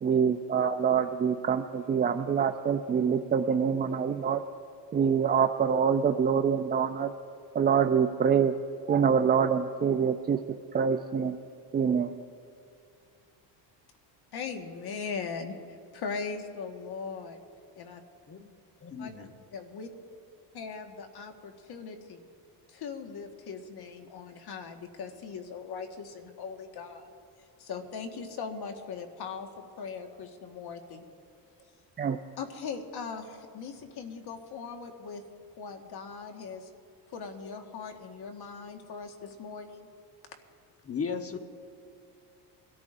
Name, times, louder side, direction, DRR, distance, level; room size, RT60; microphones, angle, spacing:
voice 1, 0.0-4.4 4.9-7.1 7.5-8.5 8.9-10.4 10.7-11.4 11.7-12.1 32.0-32.2, right 7 dB, 25° right, 7 dB, 0.3 m, -25 dB
voice 2, 14.3-17.4 17.7-18.0 19.0-19.1 19.5-19.9 20.5-22.3 22.7-27.1 27.6-31.0 32.4-35.2 35.6-36.7 37.1-39.9, left 5 dB, 55° left, 4 dB, 1.6 m, -40 dB
voice 3, 18.8-19.3 40.8-41.4, left 5 dB, 30° left, 7 dB, 1.1 m, -35 dB
23.5 x 13.5 x 2.6 m, 2.5 s
cardioid pair, 110°, 45 cm